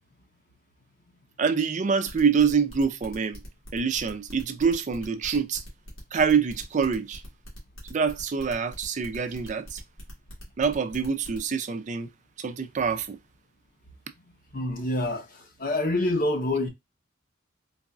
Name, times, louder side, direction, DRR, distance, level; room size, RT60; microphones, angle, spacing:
voice 1, 1.4-3.4 3.7-5.6 6.1-7.2 7.9-9.8 10.6-12.1 12.4-13.2, right 6 dB, 35° right, 0.4 m, -25 dB
sound 1, 2.1-11.4, equal, 80° left, 1.6 m, -43 dB
voice 2, 14.5-16.7, left 2 dB, 45° left, 0.8 m, -27 dB
4.0 x 2.4 x 2.3 m
head